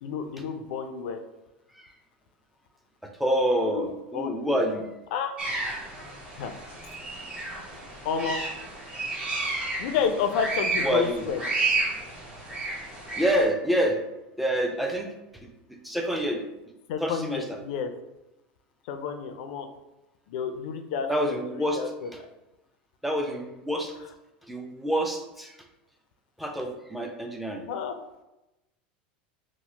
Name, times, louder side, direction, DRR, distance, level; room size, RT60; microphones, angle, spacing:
voice 1, 0.0-1.2 3.6-3.9 4.1-4.7 5.1-5.3 6.4-6.5 8.0-8.4 9.8-11.4 16.9-17.9 18.9-19.7 20.3-22.1 27.7-27.9, left 6 dB, 70° left, 7 dB, 0.4 m, -30 dB
voice 2, 3.0-4.9 10.8-11.2 13.2-14.0 14.4-15.1 15.4-16.4 17.0-17.6 21.1-21.9 23.0-24.0 24.4-25.6 26.4-27.7, right 1 dB, ahead, 2 dB, 0.4 m, -27 dB
sound 1, 5.4-13.4, right 3 dB, 25° right, 1.0 m, -32 dB
2.9 x 2.0 x 3.2 m, 0.96 s
supercardioid pair, 110°, 5 cm